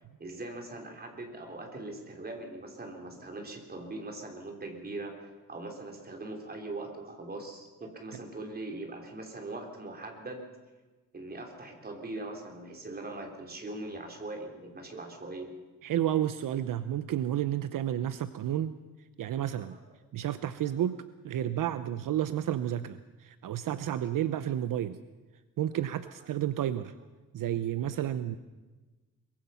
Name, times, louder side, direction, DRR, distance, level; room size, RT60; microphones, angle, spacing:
voice 1, 0.2-10.4 11.1-15.6 19.6-19.8 20.8-20.9 23.8-24.2 27.9-28.2, right 2 dB, 30° right, 3 dB, 3.6 m, -41 dB
voice 2, 15.8-18.7 19.2-19.8 20.1-21.0 21.2-25.0 25.6-26.9 27.3-28.4, right 11 dB, 70° right, 12 dB, 0.8 m, -31 dB
23.0 x 22.0 x 5.7 m, 1.2 s
wide cardioid pair, 155°, 34 cm